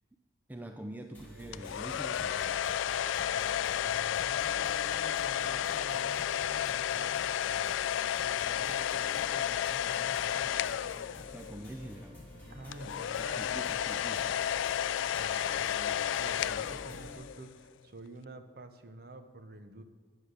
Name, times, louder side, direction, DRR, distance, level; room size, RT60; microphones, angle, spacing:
voice 1, 0.5-2.6 11.3-12.2 12.8-14.5, right 1 dB, 10° right, 5 dB, 0.4 m, -45 dB
sound 1, 1.1-17.1, left 1 dB, 10° left, 2.9 m, -49 dB
sound 2, 1.5-11.6 12.7-17.4, left 10 dB, 80° left, 0.3 m, -32 dB
voice 2, 3.3-7.6 8.2-10.6 12.5-13.5 15.1-19.8, right 2 dB, 50° right, 8 dB, 0.8 m, -49 dB
9.7 x 7.9 x 6.6 m, 1.4 s
head